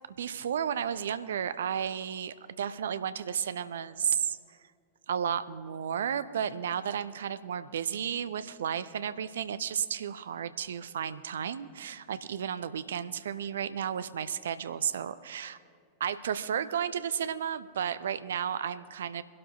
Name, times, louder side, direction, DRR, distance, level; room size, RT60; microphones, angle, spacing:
voice 1, 0.2-4.6 5.1-15.6 16.0-19.2, right 8 dB, 65° right, 14 dB, 0.5 m, -33 dB
23.5 x 12.0 x 2.7 m, 2.3 s
figure-of-eight pair, 90°, 0 cm